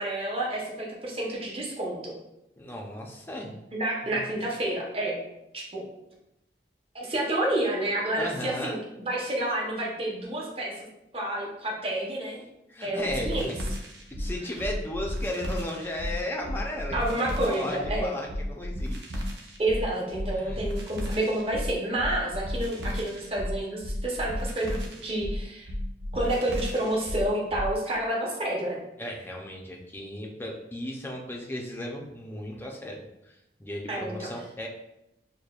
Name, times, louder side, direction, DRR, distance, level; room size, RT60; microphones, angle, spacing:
voice 1, 0.0-2.1 3.7-5.2 5.5-5.8 6.9-10.7 11.1-12.4 12.8-13.5 16.9-18.1 19.6-24.8 25.0-25.7 26.1-28.8 33.9-34.3, right 1 dB, 35° right, -2 dB, 0.8 m, -29 dB
voice 2, 2.6-3.5 4.1-4.2 8.2-8.8 12.7-13.6 14.1-19.2 20.4-20.6 29.0-34.7, left 1 dB, 10° left, 0 dB, 0.5 m, -35 dB
sound 1, 13.1-27.8, equal, 80° right, 0.7 m, -33 dB
6.5 x 2.2 x 2.3 m, 0.87 s
head